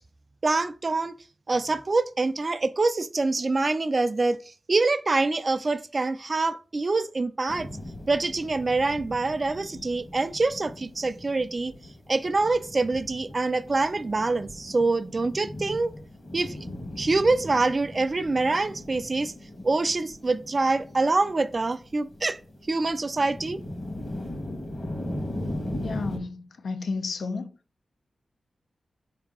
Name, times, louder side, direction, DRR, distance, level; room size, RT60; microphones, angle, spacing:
voice 1, 0.4-1.1 1.5-4.4 4.7-7.7 8.1-11.7 12.1-15.9 16.3-16.6 17.0-19.3 19.6-22.4 22.7-23.6, right 3 dB, 45° right, 0.3 m, -25 dB
sound 1, 7.5-26.2, left 1 dB, 55° left, 1.1 m, -39 dB
voice 2, 25.8-27.5, left 4 dB, 80° left, 0.4 m, -32 dB
4.5 x 2.8 x 3.6 m
cardioid pair, 60°, 0 cm